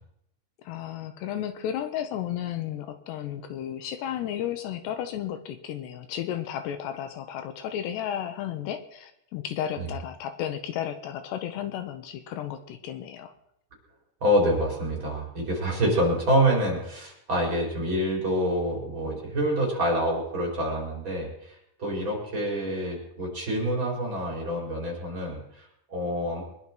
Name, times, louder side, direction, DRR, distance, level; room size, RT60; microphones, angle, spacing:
voice 1, 0.6-13.3, left 10 dB, 80° left, 8 dB, 2.9 m, -33 dB
voice 2, 14.2-26.4, equal, 25° right, -2 dB, 5.1 m, -27 dB
24.0 x 11.0 x 4.6 m, 0.77 s
omnidirectional pair, 5.0 m